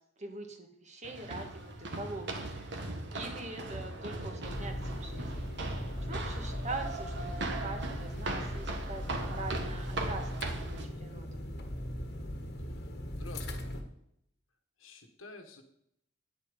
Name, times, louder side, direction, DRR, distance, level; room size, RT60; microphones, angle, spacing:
voice 1, 0.2-5.4 6.0-11.4, right 2 dB, 35° right, 4 dB, 1.7 m, -43 dB
sound 1, 1.0-10.8, right 2 dB, 60° right, 1.6 m, -39 dB
sound 2, 4.4-13.8, equal, 55° left, 1.5 m, -38 dB
voice 2, 13.1-13.8 14.8-15.6, left 2 dB, 85° left, 6 dB, 1.6 m, -50 dB
9.9 x 9.0 x 5.2 m, 0.75 s
head